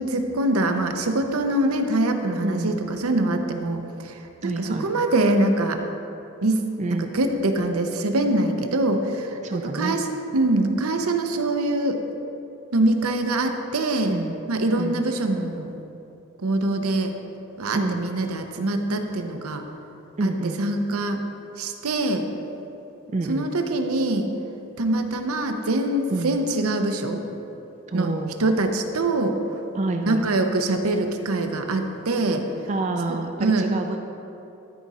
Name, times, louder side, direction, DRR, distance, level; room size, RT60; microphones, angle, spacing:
voice 1, 0.0-5.8 6.4-6.6 6.9-10.1 10.3-12.0 12.7-14.2 14.5-15.7 16.4-17.1 17.6-19.6 20.2-20.3 20.6-21.2 21.6-22.3 23.3-24.3 24.8-27.2 27.9-28.1 28.4-29.4 30.1-32.4 33.1-33.7, right 2 dB, 90° right, 6 dB, 0.7 m, -24 dB
voice 2, 2.4-2.8 4.4-4.9 6.8-7.1 9.4-10.0 14.1-14.4 14.8-15.0 17.7-18.0 20.2-20.6 23.1-23.5 26.1-26.4 27.9-28.4 29.7-30.3 32.7-34.0, right 2 dB, 35° right, 4 dB, 0.3 m, -27 dB
13.0 x 4.9 x 4.2 m, 2.9 s
head